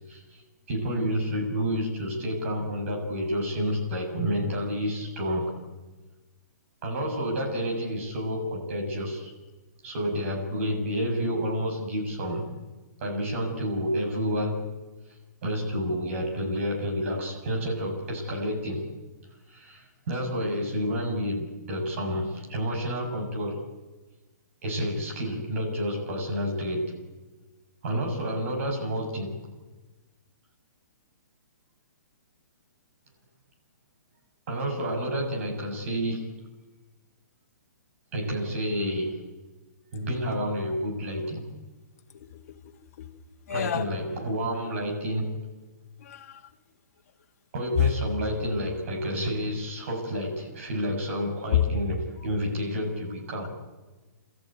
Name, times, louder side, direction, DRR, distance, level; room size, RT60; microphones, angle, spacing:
voice 1, 0.7-5.5 6.8-9.3 9.8-12.4 13.0-14.6 15.4-18.9 19.5-23.6 24.6-26.9 27.8-29.4 34.5-36.3 38.1-39.1 39.9-41.5 43.5-45.4 47.5-53.5, equal, 45° right, 7.3 m, -29 dB
voice 2, 42.2-42.7 43.0-43.1 43.5-43.9 46.0-46.4 47.8-47.9 51.1-51.2 51.5-51.6, left 12 dB, 50° left, 2.1 m, -27 dB
29.5 x 14.0 x 9.4 m
hypercardioid pair, 165°, 10 cm